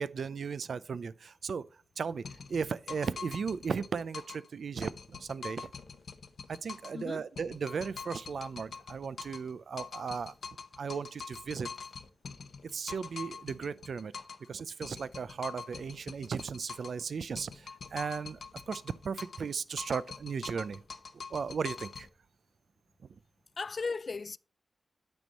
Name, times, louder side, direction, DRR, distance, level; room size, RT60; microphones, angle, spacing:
voice 1, 0.0-1.7 2.0-5.7 6.5-10.3 10.8-11.7 12.6-14.1 14.5-18.4 18.7-20.8 21.3-22.1, right 5 dB, 75° right, 0.4 m, -36 dB
sound 1, 2.2-4.5 4.8-7.0 7.4-9.5 9.8-14.5 14.8-17.0 17.4-19.5 19.8-22.1, left 5 dB, 75° left, 0.7 m, -44 dB
voice 2, 6.9-7.3 23.6-24.4, left 4 dB, 50° left, 0.3 m, -36 dB
9.1 x 5.4 x 4.1 m
wide cardioid pair, 100°, 0 cm